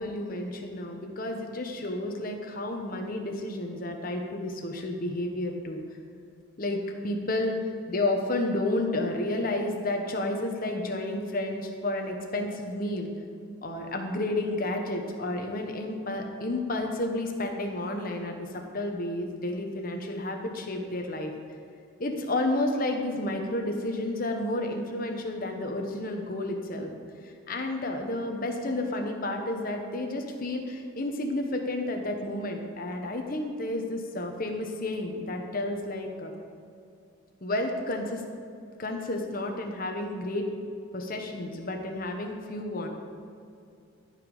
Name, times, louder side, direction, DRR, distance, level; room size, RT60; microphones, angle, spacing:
voice 1, 0.0-5.8 6.6-6.8 7.0-7.6 7.9-13.1 13.6-21.3 22.0-26.9 27.5-36.3 37.4-38.2 38.8-40.5 40.9-42.9, left 1 dB, 45° left, 3 dB, 1.1 m, -31 dB
13.5 x 5.1 x 5.5 m, 2.5 s
head